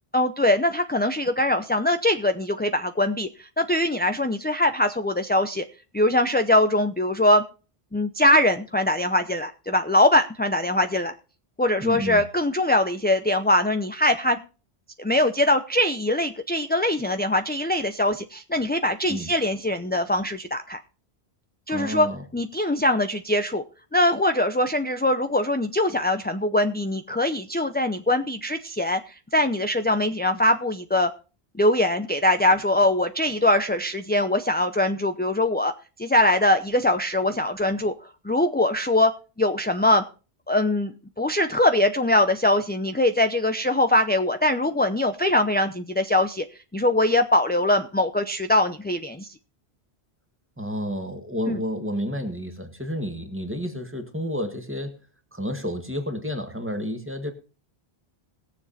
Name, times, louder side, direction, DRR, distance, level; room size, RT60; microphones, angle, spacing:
voice 1, 0.1-5.6 5.9-7.4 7.9-11.1 11.6-14.4 15.0-20.8 21.7-22.1 22.3-23.6 23.9-31.1 31.5-35.7 36.0-39.1 39.4-40.0 40.5-49.3 51.5-51.6, left 1 dB, 10° left, 8 dB, 0.5 m, -22 dB
voice 2, 11.8-12.2 19.1-19.3 21.7-22.2 50.6-54.9 55.3-57.3, equal, 10° right, 6 dB, 1.9 m, -30 dB
20.5 x 7.3 x 4.2 m, 0.35 s
omnidirectional pair, 1.1 m